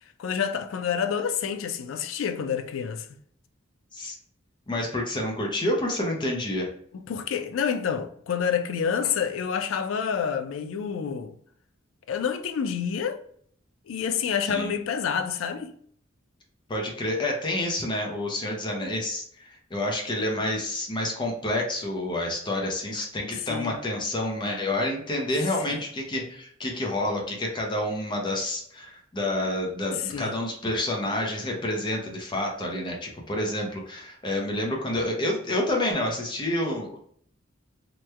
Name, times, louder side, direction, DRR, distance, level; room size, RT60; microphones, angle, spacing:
voice 1, 0.2-3.1 6.9-11.4 12.1-13.2 13.9-15.7 23.5-23.8 25.7-25.8 30.0-30.4, left 7 dB, 80° left, 0.4 m, -28 dB
voice 2, 4.7-6.7 14.5-14.7 16.7-37.0, left 1 dB, 25° left, 0.5 m, -28 dB
3.0 x 2.1 x 3.3 m
head